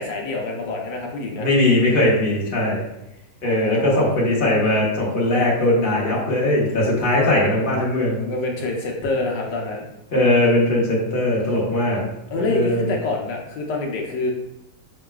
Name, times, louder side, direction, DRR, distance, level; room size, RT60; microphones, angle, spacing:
voice 1, 0.0-1.5 3.4-4.1 7.0-7.1 8.2-9.8 12.3-14.3, left 3 dB, 80° left, 0 dB, 1.3 m, -26 dB
voice 2, 1.4-2.8 3.4-8.2 10.1-12.0 12.4-12.9, left 1 dB, 35° left, -5 dB, 1.2 m, -19 dB
5.8 x 3.1 x 2.3 m, 0.86 s
omnidirectional pair, 1.9 m